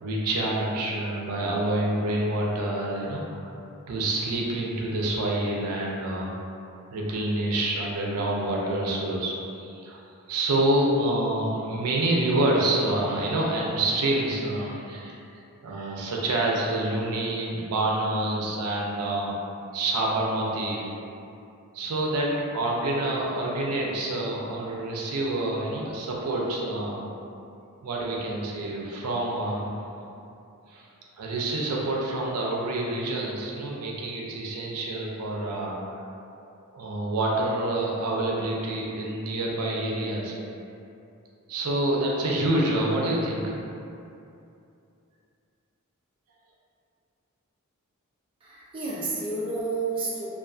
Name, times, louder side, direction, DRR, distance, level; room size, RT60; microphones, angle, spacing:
voice 1, 0.0-3.5 3.9-6.3 6.9-10.0 10.3-15.2 15.6-19.3 19.7-20.9 21.7-22.3 22.5-27.0 27.8-29.7 30.7-30.9 31.2-36.1 36.7-40.3 41.5-43.6, right 1 dB, 85° right, -3 dB, 0.4 m, -27 dB
voice 2, 48.4-50.3, right 3 dB, 25° right, -7 dB, 0.4 m, -30 dB
2.4 x 2.3 x 2.3 m, 2.7 s
head